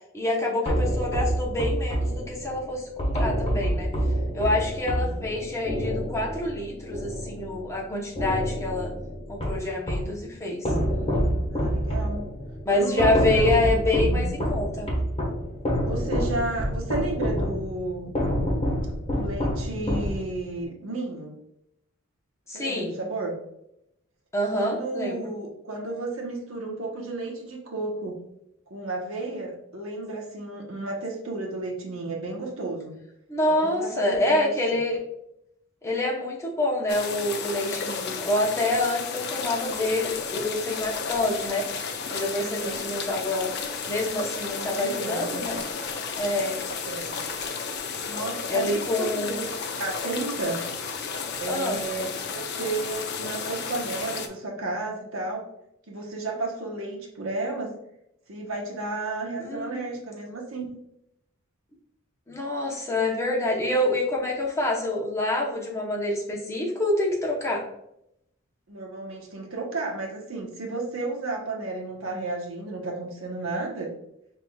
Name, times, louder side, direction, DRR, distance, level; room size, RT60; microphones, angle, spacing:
voice 1, 0.1-3.9 4.3-8.9 9.3-10.7 12.6-14.9 22.5-23.0 24.3-25.3 33.3-35.0 35.8-41.7 42.1-43.5 43.8-45.6 46.2-46.6 48.5-49.4 51.5-51.8 59.4-59.8 62.3-67.6, left 1 dB, 15° left, -3 dB, 1.0 m, -27 dB
sound 1, 0.7-7.8 8.2-10.2 10.6-20.6, equal, 30° left, 1.3 m, -27 dB
voice 2, 4.8-5.3 11.5-12.2 12.7-13.7 14.0-14.3 15.8-18.1 19.0-21.4 22.5-23.3 24.5-28.2 28.7-32.9 33.5-34.8 42.4-42.8 44.5-45.4 46.8-47.2 48.1-49.5 49.7-50.7 51.4-55.5 55.9-57.7 58.3-60.7 68.7-73.9, right 2 dB, 75° right, 0 dB, 1.1 m, -33 dB
sound 2, 36.9-54.3, left 5 dB, 55° left, 0.6 m, -33 dB
5.7 x 3.4 x 2.4 m, 0.80 s
head